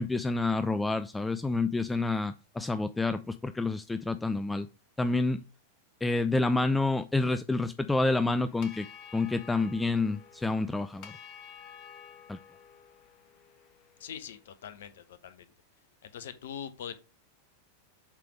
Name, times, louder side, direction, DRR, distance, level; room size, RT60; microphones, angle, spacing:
voice 1, 0.0-4.7 5.0-5.4 6.0-8.9 9.1-11.1 12.3-12.4, left 3 dB, 10° left, 0.3 m, -28 dB
sound 1, 8.4-14.8, left 8 dB, 40° left, 1.1 m, -51 dB
voice 2, 14.0-15.4 16.0-17.0, left 8 dB, 60° left, 0.9 m, -42 dB
7.4 x 3.4 x 5.1 m
figure-of-eight pair, 90°, 0 cm